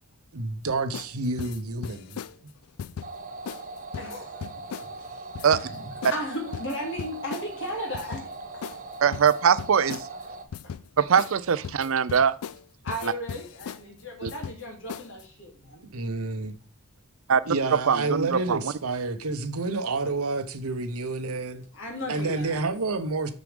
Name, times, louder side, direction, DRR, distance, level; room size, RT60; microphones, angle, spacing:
voice 1, 0.3-2.5 15.9-16.6 17.5-21.6 22.1-23.3, right 3 dB, 85° right, 1.0 m, -29 dB
sound 1, 0.9-1.1 1.4-2.4 2.8-3.1 3.5-3.6 3.9-4.9 5.4-5.7 6.0-6.2 6.5-7.5 7.9-8.3 8.6-8.8 9.1-10.1 10.5-10.9 11.2-11.4 11.6-12.6 12.9-13.8 14.3-14.6 14.9-15.2, left 7 dB, 85° left, 0.4 m, -37 dB
sound 2, 3.0-10.4, right 3 dB, 40° right, 0.9 m, -40 dB
voice 2, 4.0-4.5 5.0-5.1 5.4-8.3 8.5-8.6 10.6-10.7 12.8-15.8 21.7-22.7, equal, 60° left, 3.0 m, -35 dB
voice 3, 9.0-10.1 11.0-12.3 13.0-13.1 14.2-14.3 17.3-17.5 17.9-18.6, right 7 dB, 65° right, 0.5 m, -22 dB
6.6 x 6.4 x 5.1 m
head